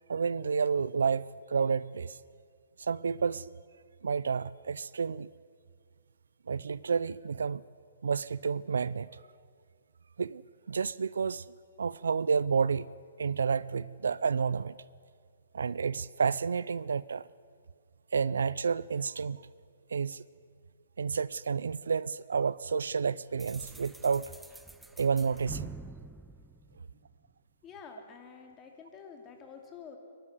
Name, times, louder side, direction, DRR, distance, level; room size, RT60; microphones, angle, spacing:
voice 1, 0.1-2.2 2.8-3.5 4.0-5.3 6.5-7.6 8.0-9.1 10.2-10.4 10.7-11.4 11.8-12.9 13.2-14.7 15.5-17.3 18.1-19.4 19.9-20.2 21.0-24.2 25.0-25.7, right 5 dB, 75° right, 20 dB, 0.5 m, -30 dB
sound 1, 23.4-27.2, right 3 dB, 5° right, 0.7 m, -47 dB
voice 2, 27.6-30.0, left 6 dB, 20° left, 3 dB, 2.8 m, -48 dB
24.0 x 11.5 x 9.6 m, 2.1 s
hypercardioid pair, 130°, 0 cm